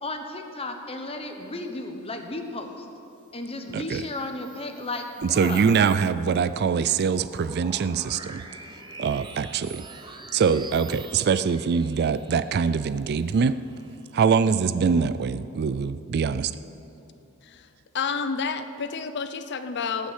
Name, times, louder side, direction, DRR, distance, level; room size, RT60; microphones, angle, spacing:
voice 1, 0.0-2.9 3.3-5.8, left 2 dB, 25° left, 5 dB, 1.1 m, -34 dB
sound 1, 3.7-14.6, right 3 dB, 20° right, 0.9 m, -46 dB
voice 2, 5.3-8.4 9.0-9.9 10.3-13.6 14.1-16.5, right 6 dB, 50° right, 14 dB, 0.3 m, -23 dB
voice 3, 17.9-20.1, left 5 dB, 50° left, 10 dB, 0.6 m, -30 dB
18.5 x 6.2 x 8.1 m, 2.8 s
head